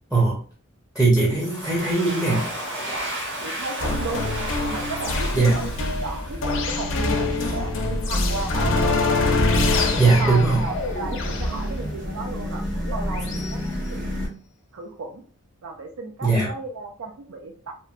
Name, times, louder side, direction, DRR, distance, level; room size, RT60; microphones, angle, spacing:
voice 1, 0.9-2.5 5.3-5.6 10.0-10.6 16.2-16.5, right 3 dB, 5° right, -4 dB, 0.6 m, -19 dB
Domestic sounds home sounds, 1.2-6.8, right 1 dB, 65° right, 0.9 m, -33 dB
voice 2, 3.4-4.3 4.6-5.7 6.0-9.0 9.6-14.2 14.7-15.2 15.6-17.7, right 3 dB, 80° right, 3 dB, 0.4 m, -34 dB
sound 1, 3.8-13.5, left 3 dB, 65° left, 0.5 m, -25 dB
sound 2, 5.5-14.3, equal, 40° right, 1.0 m, -31 dB
2.9 x 2.1 x 2.4 m, 0.42 s
head